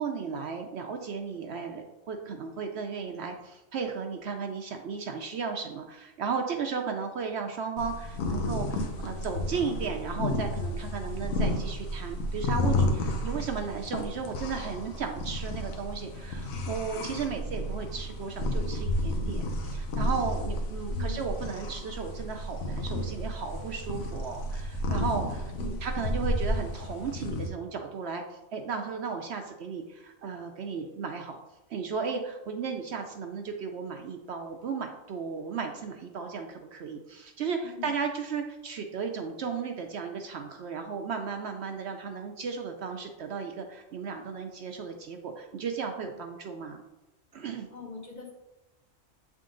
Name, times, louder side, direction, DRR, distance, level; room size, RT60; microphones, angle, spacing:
voice 1, 0.0-31.4 31.7-46.8 47.3-47.7, right 5 dB, 65° right, 4 dB, 0.8 m, -35 dB
sound 1, 7.8-27.5, left 1 dB, 85° left, 1.2 m, -32 dB
voice 2, 20.9-21.3 25.5-25.8 37.6-38.0 47.7-48.3, left 5 dB, 40° left, 0 dB, 0.8 m, -42 dB
7.6 x 3.7 x 3.7 m, 0.99 s
omnidirectional pair, 1.4 m